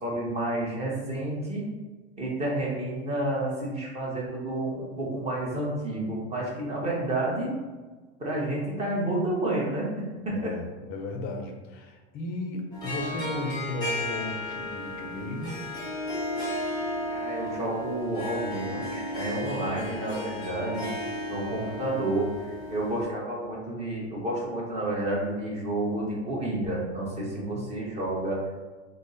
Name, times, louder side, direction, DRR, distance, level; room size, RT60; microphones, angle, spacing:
voice 1, 0.0-1.6 2.2-7.5 8.2-9.9 10.4-10.5 17.1-20.9 21.3-28.4, right 1 dB, 20° right, -3 dB, 0.8 m, -30 dB
voice 2, 10.3-15.6 20.5-20.6 27.2-27.7, left 2 dB, 30° left, 3 dB, 0.4 m, -35 dB
Harp, 12.7-23.0, left 1 dB, 10° left, 1.1 m, -34 dB
3.3 x 2.0 x 3.9 m, 1.3 s
supercardioid pair, 140°, 34 cm